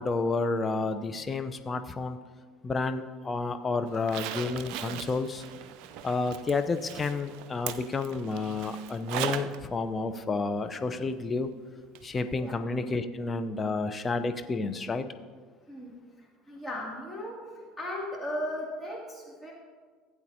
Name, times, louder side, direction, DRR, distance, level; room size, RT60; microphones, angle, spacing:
voice 1, 0.0-2.2 2.6-5.4 6.0-11.5 12.0-15.0, left 3 dB, 30° left, 9 dB, 0.7 m, -30 dB
Zipper (clothing), 3.9-9.6 9.9-10.0 11.9-12.0 12.4-12.5, right 10 dB, 60° right, 0.4 m, -38 dB
voice 2, 15.7-19.5, left 1 dB, 10° left, -3 dB, 2.5 m, -37 dB
16.0 x 8.4 x 2.8 m, 1.5 s
figure-of-eight pair, 65°, 0 cm